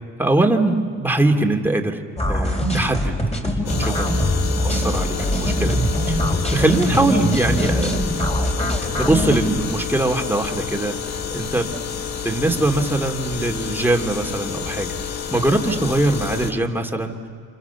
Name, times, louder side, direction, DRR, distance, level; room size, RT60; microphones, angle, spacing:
voice 1, 0.2-2.0 2.3-3.2 3.4-6.2 6.5-7.9 8.2-8.3 8.7-11.7 12.2-17.2, right 2 dB, 5° right, 2 dB, 2.7 m, -22 dB
sound 1, 2.2-9.4, equal, 20° left, 4.9 m, -22 dB
sound 2, 3.7-16.5, left 7 dB, 60° left, 1.9 m, -29 dB
30.0 x 27.0 x 7.1 m, 2.4 s
cardioid pair, 90°, 30 cm